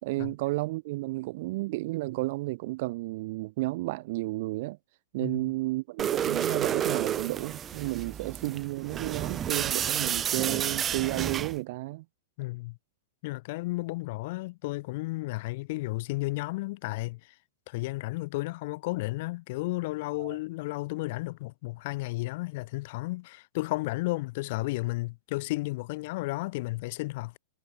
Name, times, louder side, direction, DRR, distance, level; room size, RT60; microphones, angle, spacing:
voice 1, 0.0-4.8 5.1-12.0 20.2-20.4, right 20 dB, 50° right, 3.4 m, -32 dB
voice 2, 5.2-5.5 12.4-12.8 13.2-17.3 17.7-27.4, left 21 dB, 45° left, 1.8 m, -33 dB
sound 1, 6.0-11.6, right 9 dB, 20° right, 1.8 m, -30 dB
supercardioid pair, 160°, 0 cm